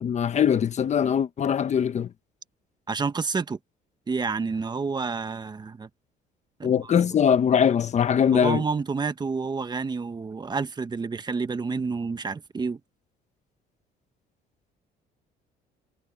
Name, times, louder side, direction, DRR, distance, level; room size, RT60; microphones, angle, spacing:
voice 1, 0.0-2.1 6.6-8.6, left 8 dB, 40° left, 1.2 m, -22 dB
voice 2, 2.9-3.6 4.1-5.9 6.6-7.1 8.3-12.8, right 4 dB, 25° right, 1.3 m, -29 dB
cardioid pair, 110°, 17 cm